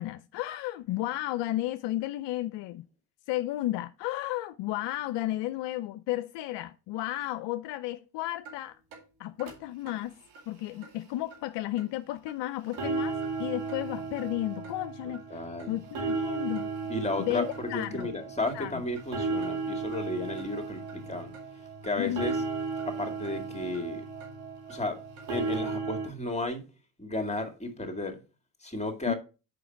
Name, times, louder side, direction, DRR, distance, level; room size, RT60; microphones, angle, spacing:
voice 1, 0.0-2.8 3.3-8.8 9.2-10.2 10.5-16.7 17.2-18.1 18.5-18.8 22.0-22.4 29.1-29.2, left 15 dB, 65° left, 0.5 m, -33 dB
sound 1, 8.4-8.5 8.9-9.0 9.4-9.5 9.9-10.0 10.3-10.4 10.8-10.9 11.3-11.4 11.8-11.9 12.3-12.4 12.7-26.1, right 4 dB, 70° right, 2.4 m, -35 dB
voice 2, 15.0-15.8 16.9-21.3 21.8-22.4 22.9-24.1 24.7-25.0 25.3-26.7 27.0-28.2 28.6-29.1, left 2 dB, 15° left, 2.1 m, -33 dB
6.9 x 5.2 x 4.5 m
hypercardioid pair, 50°, 47 cm